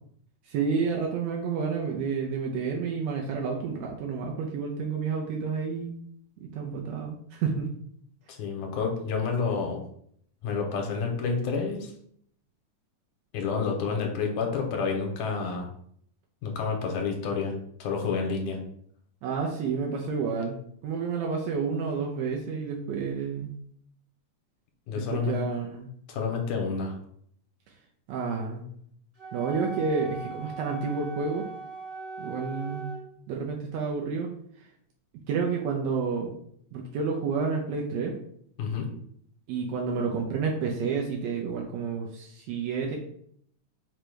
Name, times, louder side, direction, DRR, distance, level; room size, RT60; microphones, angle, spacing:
voice 1, 0.4-6.0 6.4-7.7 19.2-20.6 20.8-23.5 25.0-25.9 28.1-28.6 29.3-31.4 32.2-32.9 33.3-34.3 35.3-36.3 36.7-38.1 39.5-43.0, right 5 dB, 80° right, 0 dB, 1.6 m, -30 dB
voice 2, 8.3-9.8 10.4-11.9 13.3-15.7 16.4-18.6 24.9-25.4 26.1-26.9 38.6-38.9, left 5 dB, 80° left, 2 dB, 2.0 m, -29 dB
Wind instrument woodwind instrument, 29.2-33.0, right 4 dB, 45° right, 1.2 m, -39 dB
5.1 x 2.2 x 4.6 m, 0.67 s
omnidirectional pair, 3.5 m